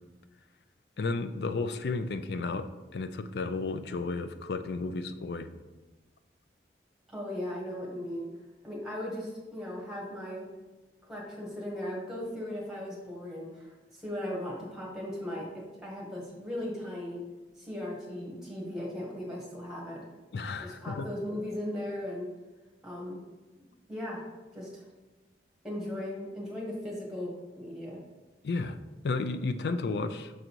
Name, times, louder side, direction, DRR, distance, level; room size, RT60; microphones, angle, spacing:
voice 1, 1.0-5.5 20.3-21.1 28.4-28.8 29.0-30.3, left 3 dB, 65° left, 10 dB, 0.4 m, -33 dB
voice 2, 7.1-8.3 8.6-10.4 11.1-17.2 17.6-20.0 20.6-22.3 22.8-23.2 23.9-24.2 24.5-24.8 25.6-28.0, left 1 dB, ahead, -4 dB, 1.5 m, -37 dB
6.4 x 3.9 x 4.5 m, 1.2 s
head